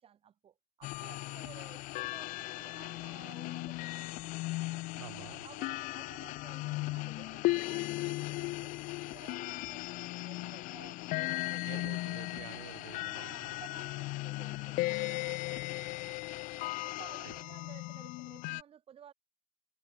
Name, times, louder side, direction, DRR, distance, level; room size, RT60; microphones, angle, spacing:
voice 1, 0.0-4.9 5.4-8.8 9.1-12.5 13.1-16.4 16.8-19.1, right 9 dB, 30° right, 2.2 m, -56 dB
sound 1, 0.8-18.6, left 21 dB, 45° left, 0.5 m, -37 dB
voice 2, 5.0-5.4 11.6-13.6 17.2-17.3, right 15 dB, 80° right, 1.2 m, -49 dB
hypercardioid pair, 105°, 19 cm